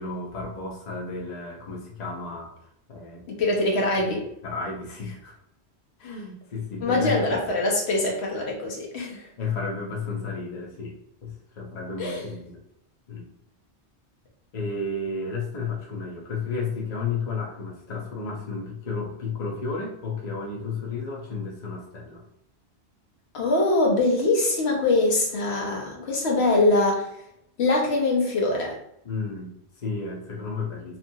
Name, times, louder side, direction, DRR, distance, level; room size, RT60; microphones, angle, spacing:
voice 1, 0.0-2.5 2.9-3.2 4.4-5.3 6.0-7.5 9.4-10.9 11.2-12.6 13.1-13.3 14.5-22.2 29.0-31.0, left 4 dB, 45° left, -2 dB, 0.7 m, -32 dB
voice 2, 3.3-4.3 6.8-9.3 12.0-12.3 23.3-27.1 27.6-28.8, left 2 dB, 75° left, -1 dB, 1.0 m, -23 dB
2.8 x 2.5 x 2.6 m, 0.74 s
omnidirectional pair, 1.1 m